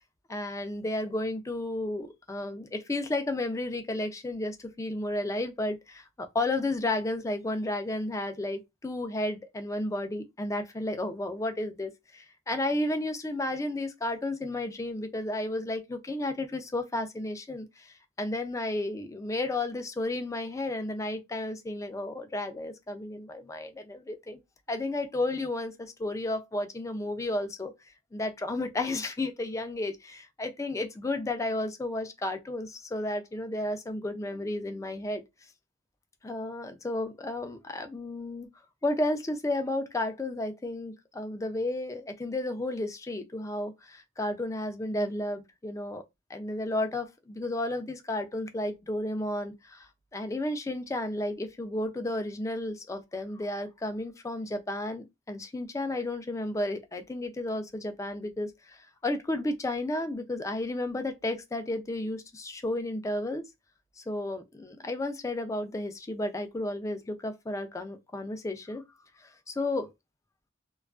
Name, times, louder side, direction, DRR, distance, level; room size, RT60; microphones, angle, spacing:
voice 1, 0.3-24.4 24.7-27.7 28.1-35.2 36.2-38.5 38.8-46.0 46.3-58.8 59.0-63.4 64.0-68.8 69.2-69.9, left 2 dB, 15° left, 0.3 m, -32 dB
2.5 x 2.3 x 2.4 m
head